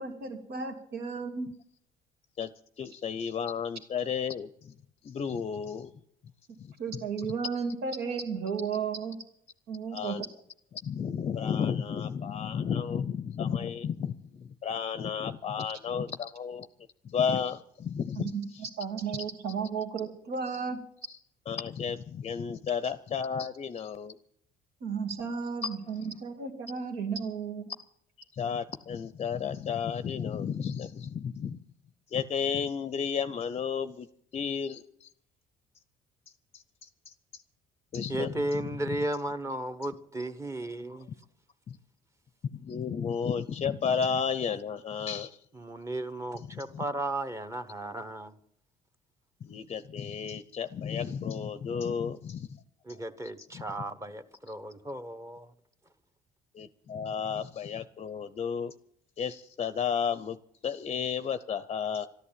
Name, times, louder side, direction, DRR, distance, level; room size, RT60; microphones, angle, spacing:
voice 1, 0.0-1.5 6.8-9.2 9.7-10.2 18.1-20.8 24.8-27.6, right 5 dB, 80° right, 2.6 m, -34 dB
voice 2, 2.8-4.7 5.0-5.9 6.6-6.7 9.9-10.2 10.8-16.7 17.0-18.3 21.5-24.2 25.6-25.7 28.3-31.6 32.1-34.1 34.3-35.1 36.5-37.4 37.9-38.3 41.7-41.8 42.5-45.4 46.5-46.8 49.4-52.5 53.5-53.6 56.5-58.7 59.2-60.4 60.6-62.1, left 7 dB, 35° left, 0.6 m, -32 dB
voice 3, 38.1-41.1 45.5-48.4 52.8-55.5, right 1 dB, 15° right, 1.1 m, -35 dB
13.0 x 11.0 x 8.7 m
cardioid pair, 110°, 17 cm